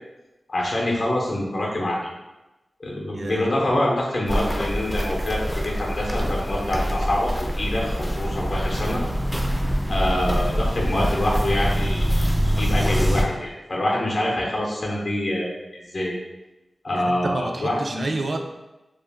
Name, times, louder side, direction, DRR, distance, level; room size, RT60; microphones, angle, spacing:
voice 1, 0.5-2.1 2.8-9.0 9.9-12.2 12.6-15.6 15.9-16.1 16.8-18.1, left 1 dB, 55° left, -3 dB, 0.6 m, -25 dB
voice 2, 3.1-3.5 9.9-10.1 16.9-18.5, right 2 dB, 60° right, 4 dB, 0.3 m, -30 dB
Walk footsteps, 4.3-13.2, equal, 10° left, 0.4 m, -24 dB
2.4 x 2.1 x 3.3 m, 1.0 s
wide cardioid pair, 70°, 0 cm